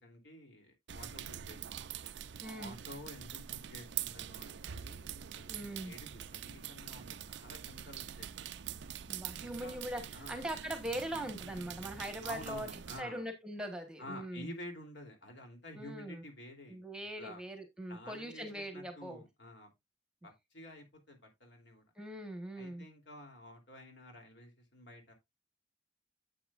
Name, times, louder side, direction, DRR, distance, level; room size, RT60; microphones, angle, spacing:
voice 1, 0.0-1.8 2.4-8.3 9.4-9.8 10.1-10.4 12.2-13.3 14.0-16.8 17.2-17.4 17.9-19.7 20.2-21.8 22.5-25.1, left 1 dB, 60° left, 3.1 m, -50 dB
sound 1, 0.9-13.0, right 10 dB, 65° right, 0.5 m, -44 dB
voice 2, 2.4-2.8 5.5-5.9 9.1-12.7 13.0-14.5 15.7-16.2 16.7-19.2 22.0-22.9, right 1 dB, 5° right, 1.2 m, -41 dB
9.9 x 8.1 x 2.5 m
head